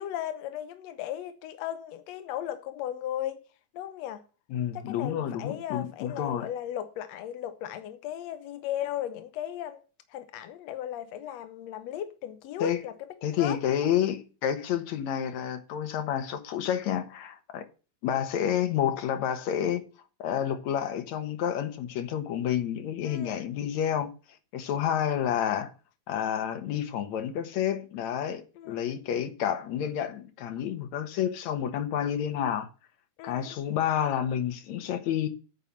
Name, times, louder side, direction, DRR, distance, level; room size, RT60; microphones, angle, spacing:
voice 1, 0.0-3.4 3.7-4.2 4.7-9.8 10.1-12.9 13.4-13.6 14.0-14.1 23.0-23.4 28.6-29.0 33.2-33.6, left 11 dB, 80° left, 1.5 m, -36 dB
voice 2, 4.5-6.5 12.6-12.8 13.2-17.7 18.0-19.8 20.2-24.1 24.5-25.7 26.1-32.7 33.2-35.3, left 9 dB, 65° left, 2.1 m, -29 dB
9.1 x 5.8 x 7.2 m
omnidirectional pair, 4.1 m